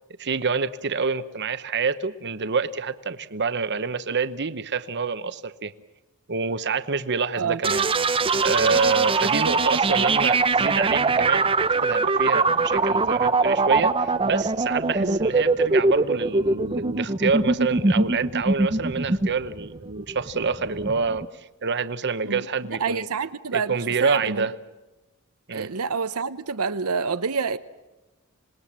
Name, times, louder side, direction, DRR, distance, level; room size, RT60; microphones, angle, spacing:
voice 1, 0.2-5.7 6.3-23.1 23.5-24.6 25.5-25.7, right 5 dB, 50° right, 1.0 m, -27 dB
sound 1, 7.6-21.2, right 3 dB, 25° right, 0.7 m, -22 dB
voice 2, 22.8-24.5 25.5-27.6, right 5 dB, 80° right, 0.9 m, -27 dB
26.5 x 20.5 x 7.4 m
head